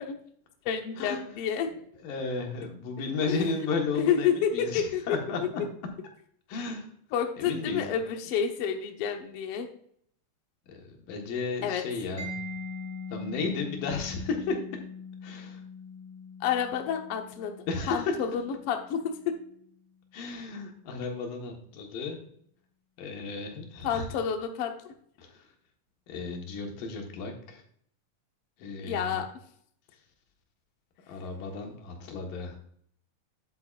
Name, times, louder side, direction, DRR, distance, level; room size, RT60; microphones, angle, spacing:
voice 1, 0.6-1.7 3.3-3.4 3.9-5.2 7.1-9.7 11.6-11.8 16.4-17.5 17.9-19.3 23.8-24.7 28.8-29.3, left 8 dB, 65° left, 4 dB, 1.5 m, -29 dB
voice 2, 2.0-5.6 6.5-6.9 7.4-7.9 10.7-14.6 15.2-15.6 17.7-18.1 20.1-22.2 23.0-24.1 25.2-25.5 26.1-27.6 28.6-29.2 31.1-32.6, left 4 dB, 85° left, 2 dB, 3.2 m, -34 dB
Mallet percussion, 12.2-19.7, left 4 dB, 25° left, 3.7 m, -42 dB
9.6 x 8.4 x 2.5 m, 0.65 s
omnidirectional pair, 3.8 m